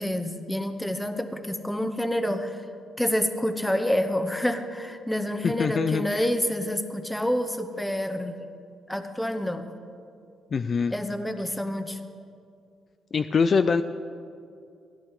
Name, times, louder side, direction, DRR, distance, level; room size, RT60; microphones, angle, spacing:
voice 1, 0.0-2.6 3.0-8.3 8.9-9.7 10.9-12.0, left 1 dB, 5° left, 7 dB, 1.0 m, -28 dB
voice 2, 5.4-6.3 10.5-10.9 13.1-13.8, left 5 dB, 45° left, 10 dB, 0.4 m, -24 dB
16.0 x 10.5 x 4.9 m, 2.4 s
cardioid pair, 90°, 0 cm